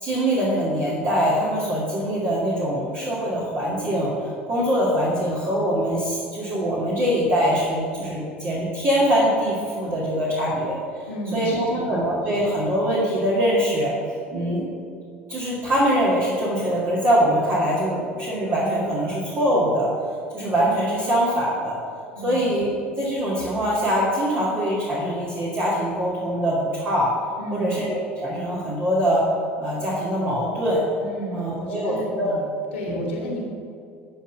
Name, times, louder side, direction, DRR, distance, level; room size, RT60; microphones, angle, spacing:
voice 1, 0.0-10.8 11.3-13.9 14.3-14.7 15.3-19.9 20.3-21.8 22.2-22.7 23.0-27.1 27.5-29.2 29.6-30.8 31.3-32.3 32.9-33.1, equal, 35° right, -6 dB, 2.1 m, -23 dB
voice 2, 11.1-12.1 22.2-22.4 27.4-27.8 31.0-32.4 32.7-33.4, right 1 dB, 70° left, -1 dB, 1.7 m, -32 dB
12.5 x 4.4 x 6.6 m, 2.4 s
figure-of-eight pair, 65°, 7 cm